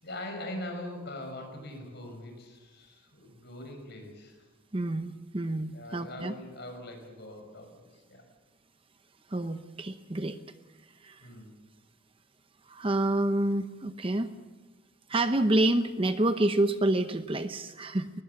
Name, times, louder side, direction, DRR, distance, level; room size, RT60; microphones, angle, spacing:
voice 1, 0.0-4.4 5.7-8.2 11.2-11.5, left 1 dB, 50° left, 4 dB, 6.2 m, -42 dB
voice 2, 4.7-6.3 9.3-10.4 11.0-11.2 12.7-14.3 15.1-18.1, right 1 dB, 25° right, 9 dB, 0.8 m, -28 dB
21.5 x 20.0 x 7.0 m, 1.2 s
head